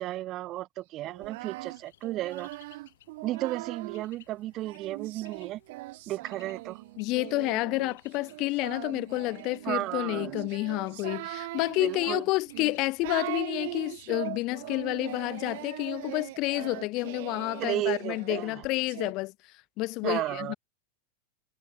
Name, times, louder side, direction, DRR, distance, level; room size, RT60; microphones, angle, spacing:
voice 1, 0.0-2.5 3.2-5.6 6.1-6.8 9.6-10.4 11.8-12.2 17.6-18.6 20.0-20.6, right 15 dB, 35° right, 0.8 m, -33 dB
Singing, 1.1-4.1 4.6-19.1, right 21 dB, 50° right, 0.3 m, -40 dB
Bird, 1.2-18.9, left 13 dB, 60° left, 6.7 m, -62 dB
voice 2, 7.0-19.3 19.8-20.5, left 21 dB, 40° left, 0.6 m, -30 dB
figure-of-eight pair, 90°, 0 cm